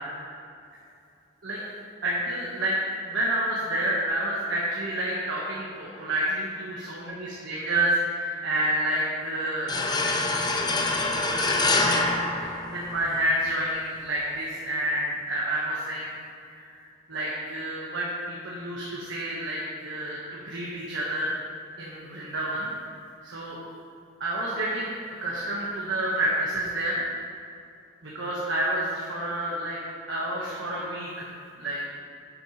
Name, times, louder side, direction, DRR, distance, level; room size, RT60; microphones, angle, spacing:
voice 1, 2.0-2.8 3.1-12.0 12.4-16.1 16.4-16.8 17.1-21.3 21.8-22.7 23.2-23.6 24.2-24.9 25.2-27.0 28.0-29.8 30.1-31.2 31.6-31.8, right 1 dB, 65° right, -6 dB, 1.3 m, -29 dB
sound 1, 9.7-13.3, left 2 dB, 20° left, 0.5 m, -25 dB
10.5 x 7.9 x 3.2 m, 2.5 s
head